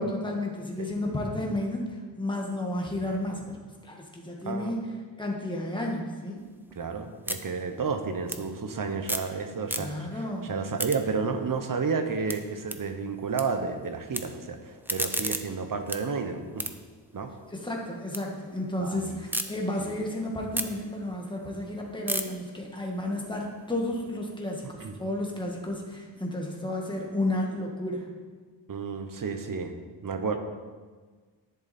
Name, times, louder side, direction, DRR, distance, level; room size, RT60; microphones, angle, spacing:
voice 1, 0.0-3.6 3.8-4.9 5.2-6.4 9.8-10.5 17.5-28.1, left 1 dB, 10° left, -1 dB, 1.6 m, -32 dB
voice 2, 4.4-4.8 6.8-16.7 17.1-17.3 18.8-19.2 19.8-19.9 24.8-24.9 28.7-29.7 30.0-30.4, right 5 dB, 50° right, 7 dB, 1.0 m, -31 dB
sound 1, 6.4-9.4 9.6-10.2 10.6-13.4 13.7-14.2 14.6-18.2 18.6-19.5 19.9-24.1, right 1 dB, 5° right, 0.5 m, -36 dB
10.5 x 10.5 x 4.3 m, 1.5 s
wide cardioid pair, 170°, 42 cm